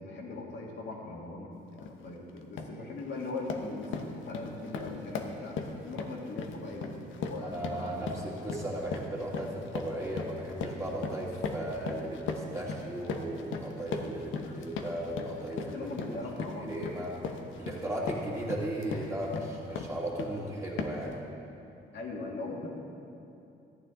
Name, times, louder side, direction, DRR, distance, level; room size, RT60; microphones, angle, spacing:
voice 1, 0.0-5.6 5.8-8.1 14.5-14.6 15.7-16.7 21.9-22.7, left 2 dB, 60° left, -3 dB, 2.0 m, -40 dB
sound 1, 1.8-2.0 2.4-2.8 3.1-20.4 20.8-21.1, left 4 dB, 75° left, 0.9 m, -38 dB
voice 2, 7.4-15.9 16.6-17.1 17.5-21.2, right 1 dB, 15° right, -4 dB, 2.4 m, -36 dB
14.0 x 9.0 x 3.8 m, 2.7 s
cardioid pair, 90°, 20 cm